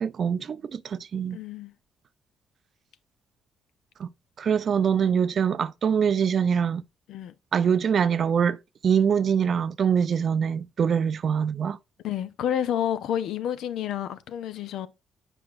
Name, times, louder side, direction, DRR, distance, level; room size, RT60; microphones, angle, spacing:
voice 1, 0.0-1.4 4.0-4.1 4.4-6.8 7.5-8.6 8.8-11.8, right 7 dB, 50° right, 0.4 m, -24 dB
voice 2, 1.3-1.7 7.1-7.3 12.0-14.9, left 10 dB, 80° left, 0.6 m, -29 dB
7.7 x 4.9 x 2.5 m
cardioid pair, 120°, 0 cm